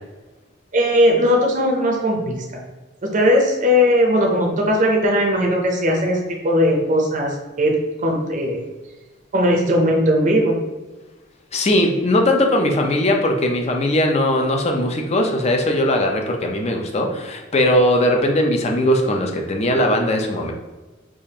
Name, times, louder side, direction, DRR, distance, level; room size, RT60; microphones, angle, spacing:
voice 1, 0.7-2.6 3.0-7.7 8.0-8.6 9.3-10.6, equal, 40° right, 0 dB, 0.6 m, -18 dB
voice 2, 11.5-20.5, left 1 dB, 35° left, 3 dB, 0.5 m, -19 dB
4.9 x 2.4 x 2.8 m, 1.2 s
head